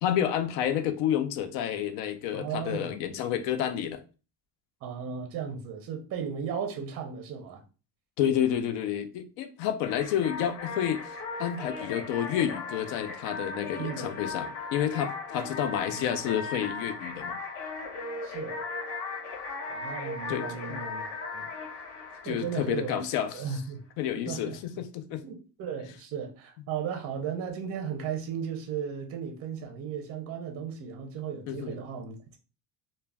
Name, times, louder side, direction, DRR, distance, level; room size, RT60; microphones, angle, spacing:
voice 1, 0.0-4.0 8.2-17.4 20.3-20.8 22.2-23.6 24.0-25.2 31.5-31.8, left 10 dB, 80° left, 0.5 m, -30 dB
voice 2, 2.3-3.1 4.8-7.6 13.8-14.1 15.9-16.1 18.2-18.6 19.7-21.5 22.2-23.0 23.3-23.8 24.3-24.6 25.2-32.2, right 7 dB, 35° right, 0.4 m, -36 dB
sound 1, 9.8-23.3, left 3 dB, 60° left, 0.9 m, -37 dB
2.3 x 2.1 x 3.3 m
cardioid pair, 165°, 44 cm